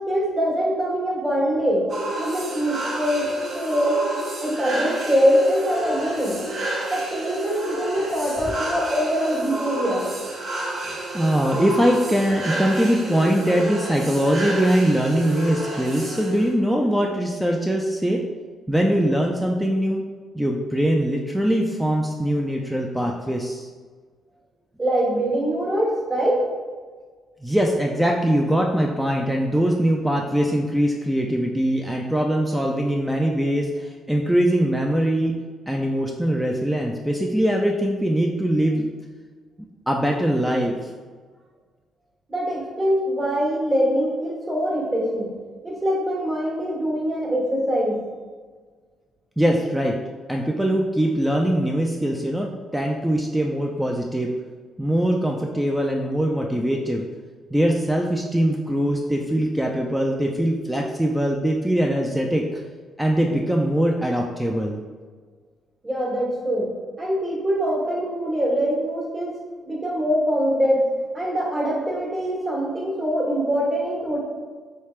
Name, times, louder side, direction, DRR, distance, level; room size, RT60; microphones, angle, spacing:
voice 1, 0.0-1.9 2.2-4.0 4.4-6.4 6.9-10.1 24.8-26.5 42.3-45.3 45.6-48.0 65.8-66.7 67.0-69.4 69.6-70.9 71.1-74.2, equal, 30° right, -4 dB, 1.3 m, -23 dB
sound 1, 1.9-16.5, right 1 dB, 50° right, 0.8 m, -30 dB
voice 2, 10.8-18.2 18.7-20.0 20.3-23.7 27.4-35.4 35.7-38.9 39.9-40.7 49.4-50.0 50.3-54.3 54.8-57.1 57.5-62.5 63.0-64.8, equal, 5° right, 0 dB, 0.3 m, -22 dB
3.2 x 3.2 x 3.1 m, 1.5 s
cardioid pair, 90°, 0 cm